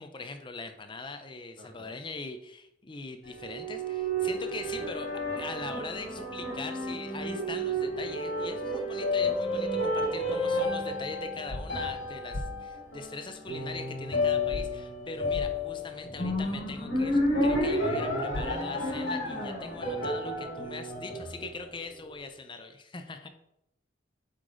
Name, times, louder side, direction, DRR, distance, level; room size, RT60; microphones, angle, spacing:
voice 1, 0.0-5.1 5.4-23.3, left 3 dB, 25° left, 7 dB, 0.5 m, -41 dB
voice 2, 1.6-2.0 12.4-12.7 19.9-20.2, equal, 60° right, 2 dB, 1.5 m, -50 dB
sound 1, 3.3-21.8, left 1 dB, 70° left, 2.4 m, -31 dB
sound 2, 11.5-11.6 12.3-12.4 14.5-14.6 15.3-15.5 17.5-17.6 18.3-18.4, left 1 dB, 85° left, 0.8 m, -35 dB
7.4 x 5.0 x 3.9 m, 0.80 s
head